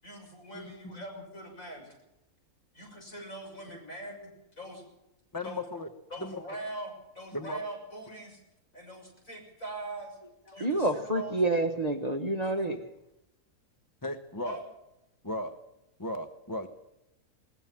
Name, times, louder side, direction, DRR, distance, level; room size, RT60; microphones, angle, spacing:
voice 1, 0.0-1.9 2.7-4.8 5.4-5.6 6.1-8.4 8.7-10.2 10.5-11.4 12.4-12.7 14.4-14.6, right 1 dB, 60° left, 6.9 m, -42 dB
voice 2, 0.5-1.0 5.3-5.9 6.2-6.4 7.3-7.6 14.0-14.6 15.2-15.5 16.0-16.7, left 1 dB, 15° left, 1.0 m, -36 dB
voice 3, 10.5-12.8, right 2 dB, 25° right, 1.3 m, -28 dB
21.0 x 19.0 x 7.5 m
omnidirectional pair, 1.6 m